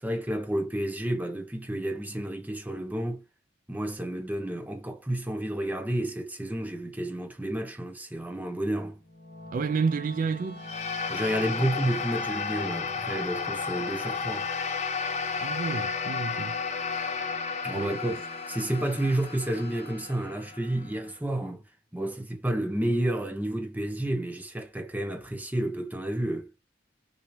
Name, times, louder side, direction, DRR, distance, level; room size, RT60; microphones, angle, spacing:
voice 1, 0.0-3.2 3.7-9.0 11.1-14.5 17.6-21.6 21.9-26.5, right 1 dB, 10° right, 0.9 m, -30 dB
sound 1, 9.0-21.3, left 1 dB, 60° left, 1.9 m, -46 dB
voice 2, 9.5-10.6 15.4-16.5 17.7-18.0, right 5 dB, 45° right, 0.3 m, -30 dB
sound 2, 10.6-21.1, left 5 dB, 35° left, 0.6 m, -33 dB
5.9 x 2.7 x 3.1 m
head